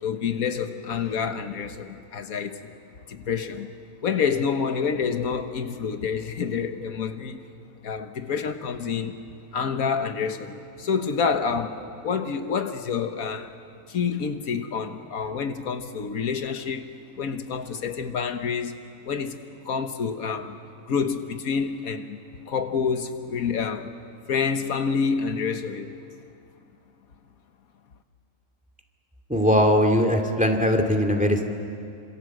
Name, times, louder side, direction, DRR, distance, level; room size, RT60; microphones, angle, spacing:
voice 1, 0.0-2.7 3.1-3.7 4.0-7.4 7.8-9.2 9.5-13.5 13.9-16.9 17.2-18.8 19.0-20.6 20.9-22.2 22.5-23.9 24.3-26.0, left 6 dB, 90° left, 1.7 m, -28 dB
voice 2, 29.3-31.4, equal, 5° right, 2.2 m, -20 dB
27.5 x 26.5 x 7.8 m
omnidirectional pair, 1.5 m